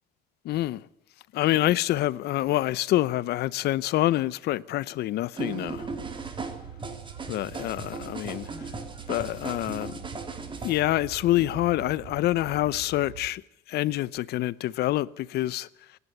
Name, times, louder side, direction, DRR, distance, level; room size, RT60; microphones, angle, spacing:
voice 1, 0.4-0.9 1.3-5.9 7.3-8.7 9.1-9.9 10.6-13.4 13.7-15.7, left 15 dB, 75° left, 0.8 m, -26 dB
sound 1, 5.3-10.8, right 4 dB, 30° right, 3.5 m, -37 dB
sound 2, 5.7-13.3, right 8 dB, 85° right, 1.1 m, -44 dB
25.5 x 11.0 x 9.8 m
cardioid pair, 110°, 17 cm